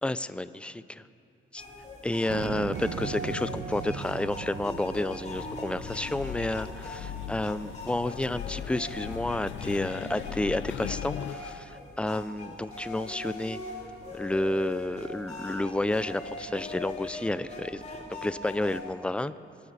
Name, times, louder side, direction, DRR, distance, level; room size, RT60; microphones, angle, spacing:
voice 1, 0.0-1.0 1.5-1.6 2.0-13.6 14.1-17.8 18.1-19.3, left 1 dB, 5° left, 14 dB, 0.4 m, -30 dB
sound 1, 1.6-18.8, left 2 dB, 35° left, 3.2 m, -41 dB
sound 2, 2.3-7.0, right 8 dB, 70° right, 0.7 m, -39 dB
sound 3, 5.3-11.4, left 11 dB, 70° left, 0.6 m, -39 dB
28.0 x 9.3 x 4.1 m, 2.6 s
cardioid pair, 90°, 20 cm